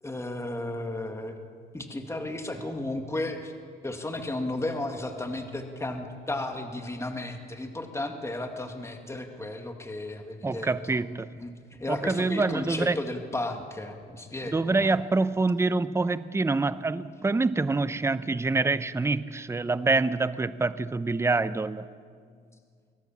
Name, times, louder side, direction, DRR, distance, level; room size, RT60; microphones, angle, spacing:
voice 1, 0.0-1.4 1.7-3.5 3.8-11.0 11.4-15.0, left 2 dB, 15° left, 4 dB, 2.2 m, -34 dB
voice 2, 10.4-11.3 11.9-13.0 14.4-21.9, right 3 dB, 15° right, 15 dB, 0.6 m, -26 dB
24.0 x 18.0 x 7.3 m, 2.1 s
cardioid pair, 90°, 20 cm